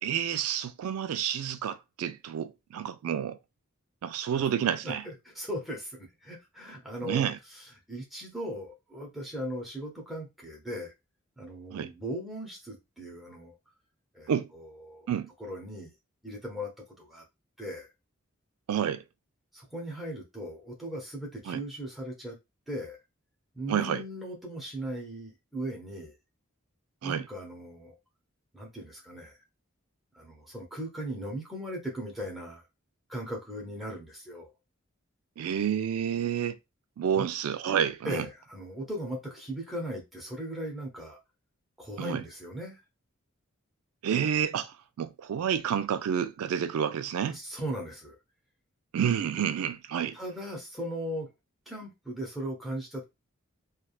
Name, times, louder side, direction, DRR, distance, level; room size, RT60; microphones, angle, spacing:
voice 1, 0.0-3.4 4.0-5.0 7.0-7.4 11.7-11.9 14.3-14.5 15.1-15.3 18.7-19.0 21.5-21.6 23.7-24.0 27.0-27.2 35.4-36.6 37.0-38.2 42.0-42.2 44.0-47.4 48.9-50.2, right 8 dB, 90° right, 0.3 m, -29 dB
voice 2, 4.8-10.9 11.4-13.5 14.1-15.1 15.4-15.9 16.2-16.7 17.0-17.2 17.6-17.9 19.5-22.4 22.7-23.0 23.5-26.1 27.0-27.9 28.5-29.4 30.1-32.6 33.1-34.5 37.1-37.3 38.0-41.2 41.8-42.8 47.2-48.2 50.1-51.3 51.7-53.0, equal, ahead, 0.7 m, -38 dB
3.3 x 2.3 x 2.3 m
head